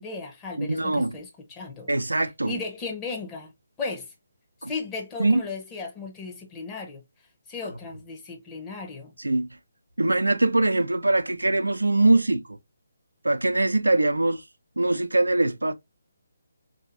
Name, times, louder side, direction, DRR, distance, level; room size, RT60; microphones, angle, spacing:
voice 1, 0.0-1.9 2.4-3.5 3.8-4.1 4.7-7.0 7.5-9.1, left 4 dB, 15° left, 1.0 m, -35 dB
voice 2, 0.6-1.2 1.9-2.6 4.6-4.7 5.2-5.4 9.2-9.5 10.0-12.6 13.2-14.4 14.8-15.7, right 2 dB, 80° right, 0.5 m, -22 dB
3.9 x 2.7 x 2.6 m
figure-of-eight pair, 145°, 0 cm